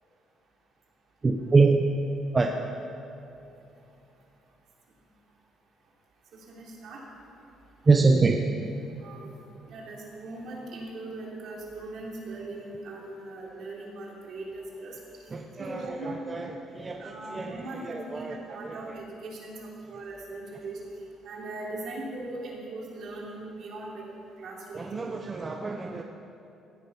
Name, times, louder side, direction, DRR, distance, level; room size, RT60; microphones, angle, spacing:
voice 1, 1.2-1.9 2.3-2.6 7.9-8.4 15.3-19.0 24.7-26.0, right 3 dB, 25° right, 3 dB, 0.7 m, -25 dB
voice 2, 6.3-7.0 9.0-9.3 9.7-15.0 15.6-16.2 17.0-20.8 21.2-24.1 24.4-25.4, right 2 dB, 60° right, -3 dB, 3.2 m, -40 dB
15.5 x 9.1 x 5.7 m, 2.8 s
cardioid pair, 125°, 0 cm